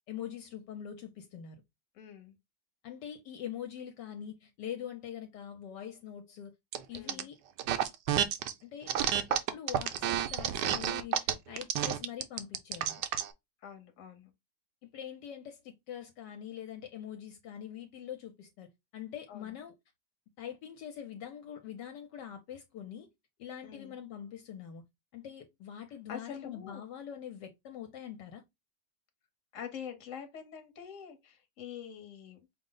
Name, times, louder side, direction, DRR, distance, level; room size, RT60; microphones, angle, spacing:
voice 1, 0.1-1.6 2.8-6.5 6.9-7.4 8.6-8.9 9.3-13.0 14.8-19.7 20.4-23.1 23.4-24.8 25.1-28.4, left 9 dB, 75° left, 1.2 m, -44 dB
voice 2, 1.9-2.4 6.9-7.3 13.6-14.3 19.3-19.5 23.6-24.0 26.1-26.8 29.5-32.4, left 8 dB, 50° left, 1.1 m, -45 dB
sound 1, 6.7-7.2 7.6-8.5 8.9-13.3, right 10 dB, 75° right, 1.1 m, -30 dB
5.2 x 2.0 x 3.7 m
omnidirectional pair, 2.0 m